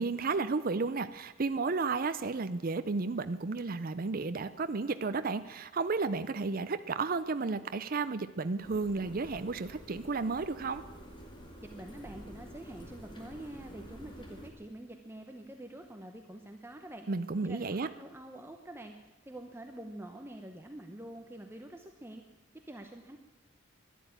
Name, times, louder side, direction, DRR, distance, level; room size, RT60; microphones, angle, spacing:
voice 1, 0.0-10.8 17.1-17.9, right 4 dB, 45° right, 11 dB, 0.5 m, -32 dB
sound 1, 8.6-14.5, equal, 25° left, 2.2 m, -49 dB
voice 2, 11.6-17.1 17.4-22.2 22.7-23.2, right 1 dB, 10° right, 4 dB, 0.8 m, -46 dB
12.5 x 11.0 x 9.4 m, 1.2 s
head